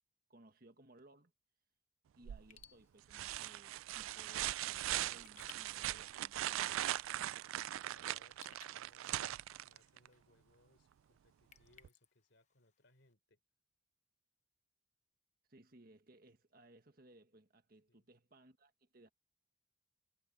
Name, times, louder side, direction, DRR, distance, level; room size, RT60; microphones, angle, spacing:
voice 1, 0.3-1.3 2.2-6.8 15.5-19.1, right 1 dB, 45° right, 1.6 m, -63 dB
sound 1, 2.3-2.6 3.1-10.1 11.8-11.9, right 13 dB, 85° right, 0.3 m, -40 dB
Raindrop / Drip, 2.4-13.1, left 8 dB, 35° left, 1.0 m, -66 dB
voice 2, 7.7-9.2 9.6-13.4 17.9-18.1, left 2 dB, 60° left, 4.2 m, -70 dB
head